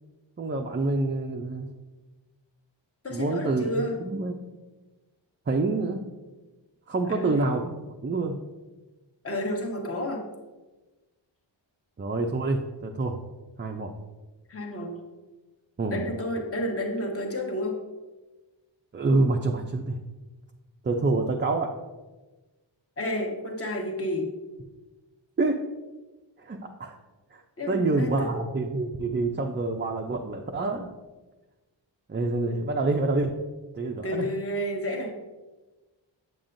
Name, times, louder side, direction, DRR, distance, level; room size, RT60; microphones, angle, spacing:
voice 1, 0.4-1.7 3.1-3.7 4.0-4.4 5.5-6.0 6.9-7.8 8.0-8.4 12.0-13.2 13.6-13.9 15.8-16.0 18.9-20.0 20.8-21.7 25.4-25.6 26.4-26.9 27.3-27.4 27.7-30.9 32.1-33.3 33.7-34.3, right 3 dB, 25° right, 2 dB, 0.4 m, -27 dB
voice 2, 3.0-4.0 7.0-7.4 9.2-10.2 14.5-14.9 15.9-17.8 23.0-24.3 27.6-28.4 32.5-32.7 34.0-35.2, left 1 dB, 30° left, 1 dB, 1.1 m, -31 dB
7.7 x 7.2 x 2.6 m, 1.2 s
wide cardioid pair, 110°, 46 cm